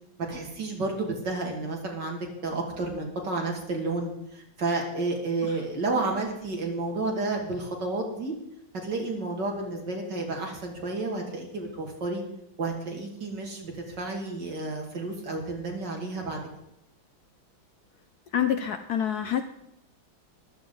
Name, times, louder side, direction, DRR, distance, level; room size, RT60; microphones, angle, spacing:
voice 1, 0.3-8.3 8.8-12.2 12.6-16.4, right 2 dB, 60° right, 0 dB, 3.0 m, -31 dB
voice 2, 18.3-19.4, left 9 dB, 65° left, 9 dB, 1.0 m, -27 dB
14.5 x 12.5 x 3.9 m, 0.80 s
omnidirectional pair, 2.2 m